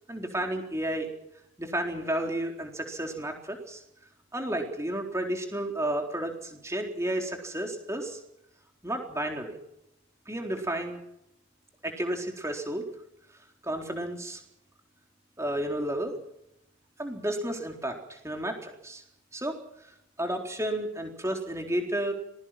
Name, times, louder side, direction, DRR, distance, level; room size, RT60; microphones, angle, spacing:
voice 1, 0.1-1.1 1.6-3.8 4.3-8.2 8.8-9.6 10.3-11.0 11.8-12.8 13.6-14.4 15.4-16.1 17.0-19.0 19.3-19.6 20.2-22.1, right 1 dB, 15° right, 2 dB, 4.0 m, -32 dB
26.0 x 21.0 x 6.0 m, 0.80 s
head